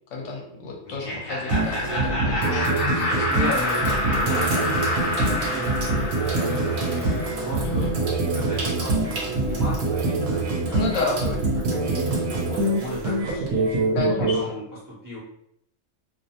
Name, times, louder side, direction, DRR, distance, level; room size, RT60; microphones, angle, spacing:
voice 1, 0.1-3.3 7.6-8.0 10.7-11.2 13.9-14.5, left 3 dB, 75° left, 0 dB, 0.9 m, -31 dB
Laughter, 0.9-7.7, left 1 dB, 40° left, 0.5 m, -28 dB
sound 1, 1.5-14.4, right 2 dB, 80° right, 0.9 m, -25 dB
Sink (filling or washing), 1.8-2.2 2.9-13.8, right 2 dB, 55° right, 0.7 m, -34 dB
voice 2, 3.3-5.9 6.2-15.2, equal, 25° right, -8 dB, 0.5 m, -35 dB
2.4 x 2.0 x 2.7 m, 0.74 s
omnidirectional pair, 1.3 m